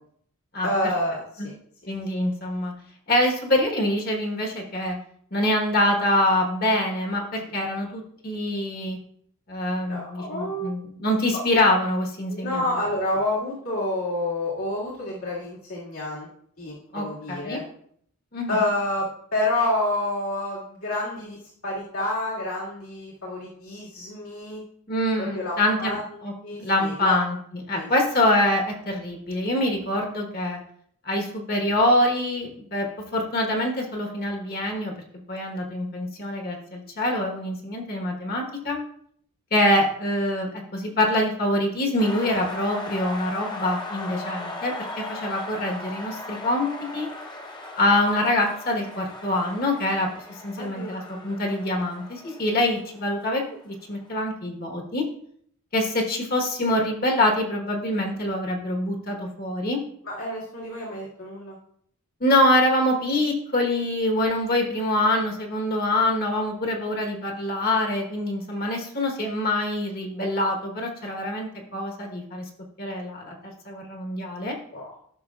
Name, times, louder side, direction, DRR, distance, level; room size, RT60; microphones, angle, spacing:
voice 1, 0.6-1.5 9.9-10.7 12.3-16.3 16.6-17.6 18.5-24.6 25.2-26.0 26.4-27.1 27.7-27.9 43.9-44.2 50.6-51.3 60.0-61.6 74.7-74.9, left 1 dB, 75° left, -6 dB, 2.1 m, -29 dB
voice 2, 1.9-2.7 3.1-5.0 5.3-9.0 9.5-12.6 16.9-17.6 18.3-18.6 24.9-25.9 26.2-27.4 27.7-30.6 31.0-34.9 35.3-38.8 39.5-47.1 47.8-50.1 50.4-55.0 55.7-59.8 62.2-72.5 72.8-73.3 73.6-74.5, left 1 dB, 45° left, 2 dB, 1.3 m, -25 dB
sound 1, 42.0-53.7, left 2 dB, 20° left, 0.8 m, -38 dB
13.0 x 6.2 x 2.4 m, 0.65 s
head